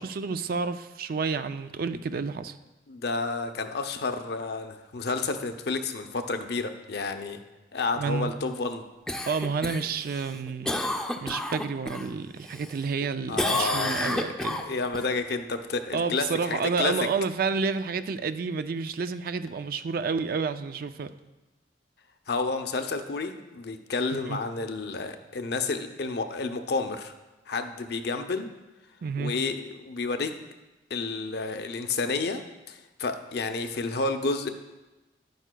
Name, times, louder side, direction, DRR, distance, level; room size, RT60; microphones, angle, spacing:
voice 1, 0.0-2.6 8.0-8.3 9.3-10.8 11.2-14.6 15.9-21.1 24.1-24.4 29.0-29.3, right 5 dB, 55° right, 11 dB, 0.4 m, -30 dB
voice 2, 2.9-7.4 7.7-8.8 13.3-14.0 14.4-16.9 22.3-27.1 27.5-28.5 29.2-30.3 30.9-34.5, left 3 dB, 60° left, 7 dB, 0.6 m, -30 dB
Cough, 9.1-12.1 12.5-13.1 13.4-15.1 19.5-19.6, left 1 dB, 5° left, 0.5 m, -30 dB
11.0 x 9.2 x 2.2 m, 1.1 s
head